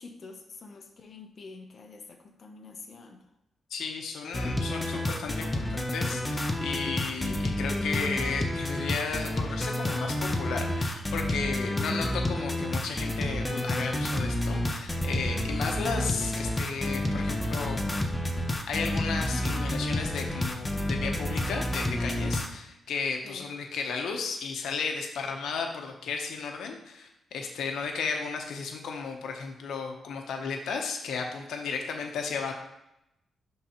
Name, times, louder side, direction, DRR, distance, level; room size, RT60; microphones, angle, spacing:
voice 1, 0.0-3.2 11.5-12.0 23.2-23.5, left 4 dB, 45° left, 3 dB, 0.8 m, -47 dB
voice 2, 3.7-17.8 18.4-32.5, left 5 dB, 90° left, 3 dB, 0.9 m, -34 dB
sound 1, 4.3-22.5, left 1 dB, 10° left, 0.7 m, -29 dB
11.0 x 3.8 x 3.0 m, 0.87 s
cardioid pair, 120°, 0 cm